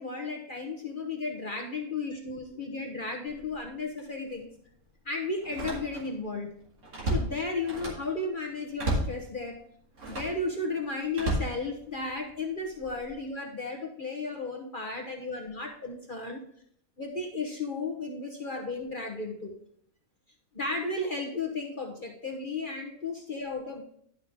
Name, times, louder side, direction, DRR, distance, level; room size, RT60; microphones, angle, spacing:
voice 1, 0.0-4.5 5.0-6.5 7.1-9.6 10.1-16.4 17.0-19.5 20.5-23.8, left 3 dB, 40° left, 2 dB, 1.1 m, -34 dB
Slam, 3.3-3.5 4.0-4.1 5.4-6.2 6.6-8.1 8.8-9.2 10.0-10.4 11.1-12.2 12.8-13.1, right 1 dB, 85° right, 2.6 m, -32 dB
11.5 x 5.6 x 3.6 m, 0.64 s
omnidirectional pair, 1.5 m